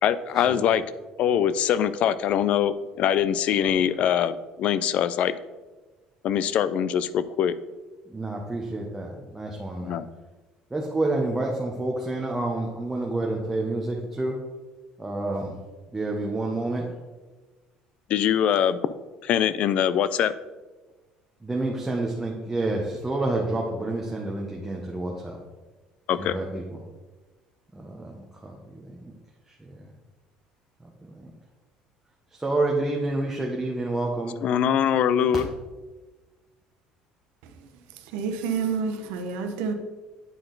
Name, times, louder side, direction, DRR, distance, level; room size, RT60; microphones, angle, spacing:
voice 1, 0.0-0.8 1.2-5.3 6.2-7.5 9.8-10.0 18.1-18.8 19.2-20.3 26.1-26.4 34.4-35.5, left 9 dB, 50° left, 15 dB, 0.4 m, -23 dB
voice 2, 8.1-10.0 10.7-14.4 15.0-15.6 15.9-16.9 21.4-25.4 26.2-26.8 27.7-29.1 29.5-29.9 30.8-31.3 32.3-34.4, right 2 dB, 10° right, -1 dB, 0.8 m, -29 dB
voice 3, 37.9-39.7, right 5 dB, 90° right, 6 dB, 0.9 m, -29 dB
8.9 x 4.4 x 3.9 m, 1.2 s
cardioid pair, 140°, 3 cm